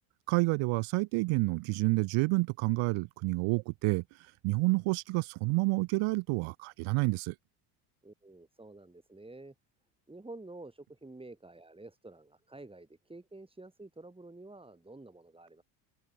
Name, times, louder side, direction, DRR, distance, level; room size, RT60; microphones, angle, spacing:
voice 1, 0.3-4.0 4.4-7.3, right 24 dB, 80° right, 1.2 m, -29 dB
voice 2, 8.0-9.5 10.1-15.6, right 2 dB, 10° right, 7.3 m, -49 dB
cardioid pair, 110°, 48 cm